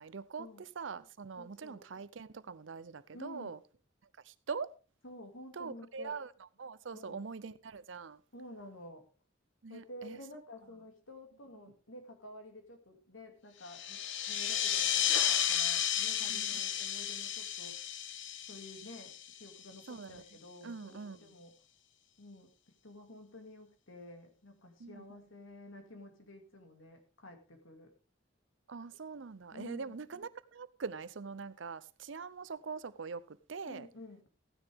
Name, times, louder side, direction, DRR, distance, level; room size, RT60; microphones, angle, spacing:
voice 1, 0.0-3.6 4.2-4.7 5.5-8.2 9.6-10.2 16.3-16.6 19.9-20.2 20.6-21.3 24.8-25.0 28.7-33.9, right 5 dB, 70° right, 0.6 m, -43 dB
voice 2, 1.4-1.9 3.1-3.5 5.0-6.2 6.9-7.2 8.3-9.1 9.7-14.0 14.3-17.9 18.5-21.5 22.2-22.5 22.8-27.9 29.5-30.0 33.7-34.2, left 1 dB, 90° left, 2.5 m, -51 dB
sound 1, 13.7-19.8, left 9 dB, 65° left, 1.0 m, -33 dB
15.0 x 9.8 x 3.6 m
head